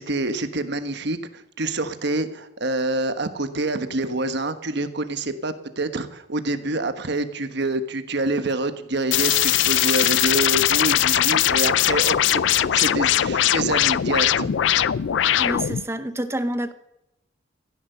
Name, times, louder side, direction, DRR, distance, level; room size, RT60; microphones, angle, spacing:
voice 1, 0.0-14.5 15.0-15.1, right 2 dB, 60° right, 9 dB, 1.3 m, -27 dB
sound 1, 9.1-15.8, left 11 dB, 70° left, 0.4 m, -20 dB
voice 2, 15.4-16.7, right 1 dB, 15° right, 11 dB, 0.8 m, -28 dB
15.5 x 10.5 x 6.8 m, 0.87 s
head